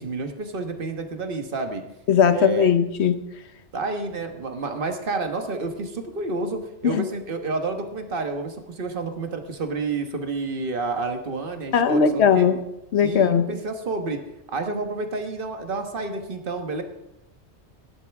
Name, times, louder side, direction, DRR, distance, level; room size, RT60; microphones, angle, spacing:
voice 1, 0.0-1.8 2.3-2.7 3.7-12.5 13.0-14.2 14.5-16.8, right 3 dB, 50° right, 5 dB, 1.5 m, -29 dB
voice 2, 2.1-3.2 6.8-7.0 11.7-12.6 12.9-13.5, left 7 dB, 75° left, 10 dB, 1.1 m, -19 dB
16.5 x 11.0 x 3.5 m, 0.91 s
omnidirectional pair, 1.1 m